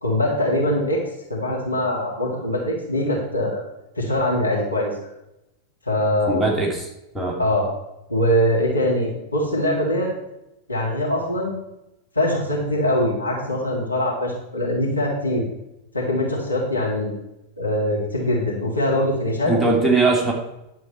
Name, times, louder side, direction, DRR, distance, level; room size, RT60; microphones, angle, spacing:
voice 1, 0.0-1.0 1.3-3.6 4.0-4.9 5.8-6.5 7.4-7.7 8.1-10.1 10.7-11.6 12.2-15.4 15.9-17.1 17.6-19.5, left 1 dB, 85° left, -3 dB, 2.4 m, -22 dB
voice 2, 6.3-6.9 7.1-7.4 19.5-20.3, right 3 dB, ahead, -1 dB, 2.5 m, -20 dB
11.0 x 7.5 x 4.3 m, 0.90 s
figure-of-eight pair, 90°, 0 cm